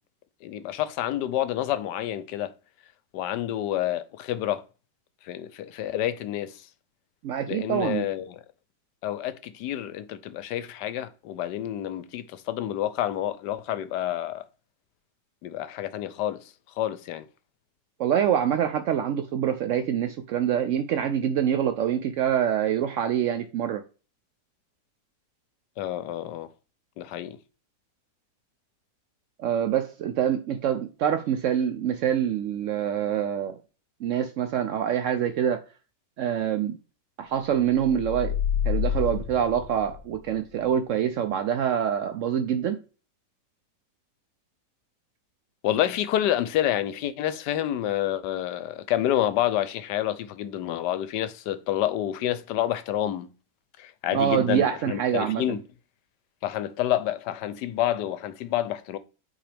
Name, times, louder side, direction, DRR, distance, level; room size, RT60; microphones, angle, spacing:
voice 1, 0.4-2.5 3.1-4.6 5.3-6.5 7.5-8.4 9.0-14.4 15.4-16.4 16.8-17.3 25.8-26.5 27.0-27.4 45.6-53.3 53.8-55.6 56.4-59.0, left 12 dB, 75° left, 1.1 m, -28 dB
voice 2, 7.2-8.1 18.0-23.8 29.4-33.6 34.0-35.6 36.2-36.8 37.2-38.4 38.7-42.8 54.1-55.6, right 9 dB, 80° right, 0.7 m, -25 dB
sound 1, 37.8-40.4, left 9 dB, 45° left, 0.8 m, -28 dB
8.6 x 4.7 x 3.4 m
omnidirectional pair, 1.9 m